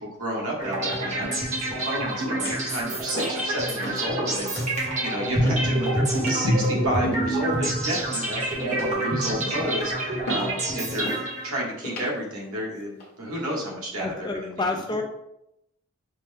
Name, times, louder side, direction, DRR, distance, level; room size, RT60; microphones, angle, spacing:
voice 1, 0.0-11.1 11.4-14.7, equal, 80° right, -3 dB, 1.3 m, -31 dB
sound 1, 0.6-11.7, right 1 dB, 35° right, 1.0 m, -27 dB
sound 2, 1.7-2.1 2.4-2.7 3.1-3.5 3.8-4.1 4.5-4.7 5.4-5.7 6.2-6.5 7.0-7.5 7.9-8.3 8.7-9.0 9.5-9.8 10.3-10.5 11.0-11.3 11.8-12.1 12.7-13.1, equal, 45° left, 1.1 m, -35 dB
voice 2, 14.0-15.0, left 3 dB, 20° left, 4 dB, 0.3 m, -28 dB
5.2 x 2.1 x 3.3 m, 0.82 s
head